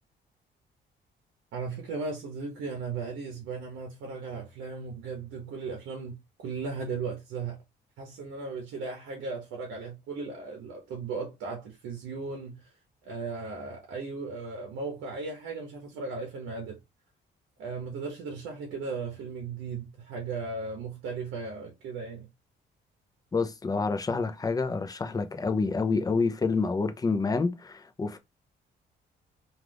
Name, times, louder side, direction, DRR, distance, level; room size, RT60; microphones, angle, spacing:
voice 1, 1.5-7.6 8.0-12.6 13.0-16.8 17.6-22.3, right 4 dB, 85° right, 0.8 m, -36 dB
voice 2, 23.3-28.2, left 4 dB, 20° left, 0.4 m, -28 dB
2.4 x 2.4 x 3.3 m
cardioid pair, 90°, 20 cm